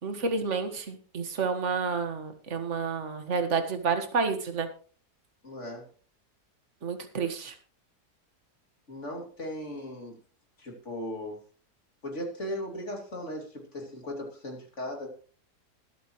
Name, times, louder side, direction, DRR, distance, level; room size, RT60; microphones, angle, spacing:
voice 1, 0.0-4.7 6.8-7.6, right 5 dB, 45° right, 7 dB, 1.9 m, -30 dB
voice 2, 5.4-5.9 8.9-10.2 10.6-11.4 12.0-15.1, left 1 dB, 45° left, 1 dB, 3.0 m, -37 dB
21.0 x 8.3 x 3.1 m, 0.40 s
omnidirectional pair, 1.8 m